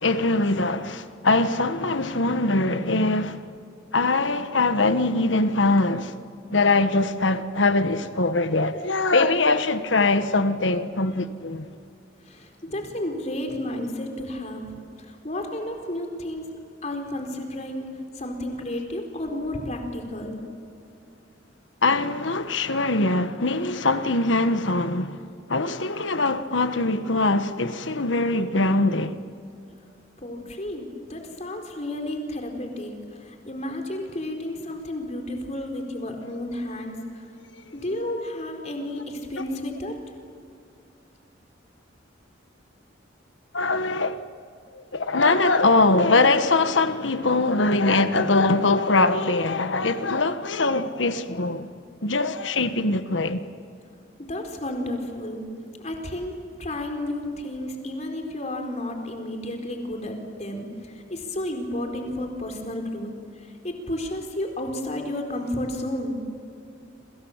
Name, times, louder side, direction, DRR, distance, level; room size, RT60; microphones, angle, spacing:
voice 1, 0.0-3.4 3.9-6.1 6.5-11.7 21.8-25.2 25.5-29.2 43.5-44.3 44.7-51.7 52.0-53.4, left 2 dB, 80° left, 1.5 m, -22 dB
voice 2, 12.2-14.7 15.0-16.5 16.8-17.9 18.1-20.4 30.2-37.3 37.7-39.9 54.2-55.4 55.8-66.2, left 1 dB, 35° left, 4.5 m, -32 dB
28.0 x 27.5 x 7.4 m
head